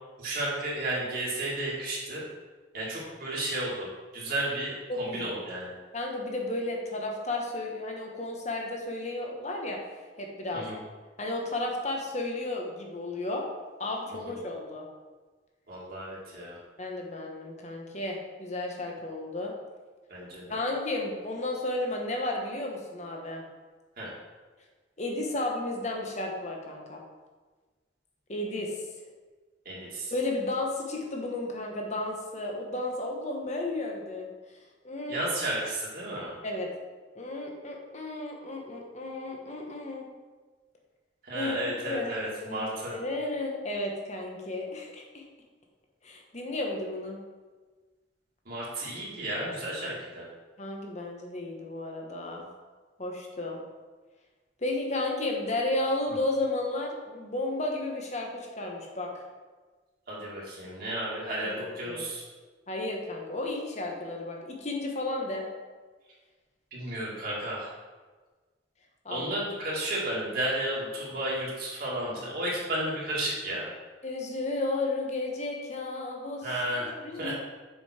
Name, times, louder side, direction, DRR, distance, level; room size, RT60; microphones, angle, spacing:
voice 1, 0.2-2.2 2.7-3.9 4.1-5.7 10.5-10.8 15.7-16.6 20.1-20.6 24.0-24.1 29.7-30.1 35.1-36.3 41.2-43.0 48.5-50.3 60.1-62.2 66.7-67.7 69.1-73.7 76.4-76.9 77.1-77.3, right 1 dB, 55° right, -6 dB, 2.1 m, -33 dB
voice 2, 4.9-5.3 5.9-9.8 10.2-10.7 11.2-13.5 13.8-14.8 16.8-19.5 20.5-23.4 25.0-27.0 28.3-28.7 30.1-34.3 34.8-35.2 36.4-36.7 37.1-40.1 41.3-45.2 46.0-47.2 50.6-52.4 53.0-53.6 54.6-59.2 61.4-62.1 62.7-65.4 69.0-69.4 74.0-76.5 76.8-77.3, left 2 dB, 40° left, 0 dB, 1.2 m, -33 dB
7.0 x 5.4 x 4.4 m, 1.3 s
head